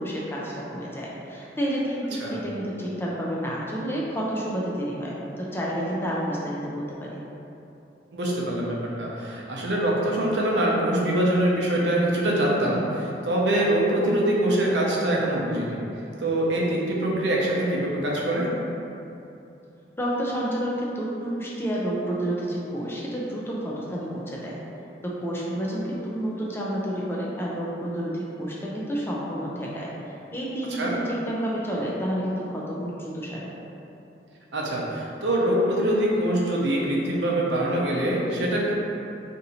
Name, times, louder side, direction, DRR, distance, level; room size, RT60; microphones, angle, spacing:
voice 1, 0.0-7.1 20.0-24.6 25.0-29.9 30.3-33.5, equal, 15° left, -5 dB, 0.4 m, -30 dB
voice 2, 8.1-15.8 16.2-18.5 30.7-31.0 34.5-38.7, right 1 dB, 85° right, -4 dB, 0.7 m, -24 dB
2.7 x 2.6 x 4.1 m, 2.8 s
head